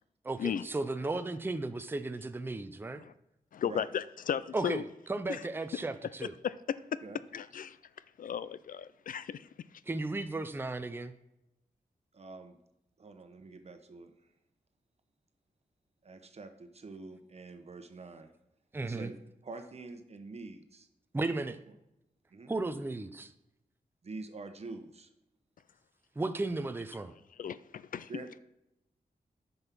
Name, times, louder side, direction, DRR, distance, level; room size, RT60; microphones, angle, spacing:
voice 1, 0.2-3.0 4.5-6.3 9.9-11.1 18.7-19.1 21.1-21.6 22.5-23.3 26.2-27.1, right 2 dB, 15° right, 0.5 m, -35 dB
voice 2, 3.5-4.8 5.3-5.4 6.4-7.0 7.3-7.8 8.2-9.5 27.4-28.1, left 8 dB, 65° left, 0.4 m, -35 dB
voice 3, 12.1-12.6 13.0-14.1 16.0-18.3 18.8-20.9 22.3-22.5 24.0-25.1 28.1-28.4, right 3 dB, 45° right, 1.0 m, -46 dB
9.5 x 5.4 x 6.0 m
wide cardioid pair, 110°, 15 cm